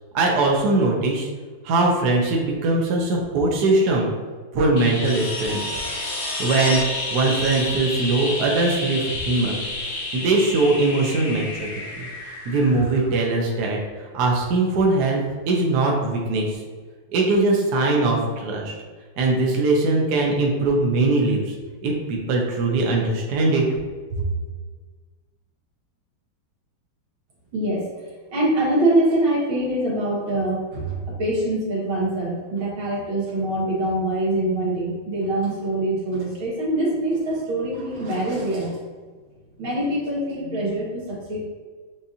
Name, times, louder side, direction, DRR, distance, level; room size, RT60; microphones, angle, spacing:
voice 1, 0.1-1.3 1.6-4.1 4.5-5.6 6.4-6.8 7.1-9.5 10.1-11.7 12.0-12.1 12.4-13.8 14.1-15.2 15.5-16.6 17.1-18.8 19.2-21.5 21.8-23.6 24.1-24.2, right 2 dB, 65° right, -1 dB, 1.2 m, -21 dB
sound 1, 4.8-13.4 15.8-15.9, left 2 dB, 60° left, 1.3 m, -30 dB
voice 2, 27.5-27.9 28.3-38.8 39.6-41.4, right 1 dB, 80° right, -6 dB, 2.2 m, -24 dB
7.0 x 2.5 x 2.7 m, 1.5 s
omnidirectional pair, 2.2 m